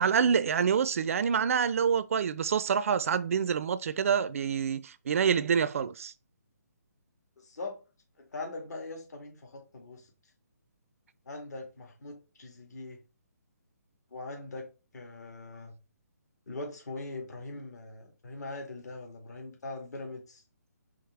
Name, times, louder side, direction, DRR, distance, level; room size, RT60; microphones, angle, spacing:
voice 1, 0.0-6.1, right 7 dB, 50° right, 0.4 m, -27 dB
voice 2, 7.4-7.8 8.2-10.1 11.3-13.0 14.1-14.7 14.9-15.7 16.5-20.4, left 2 dB, 70° left, 2.0 m, -41 dB
5.0 x 3.1 x 3.2 m
hypercardioid pair, 150°, 9 cm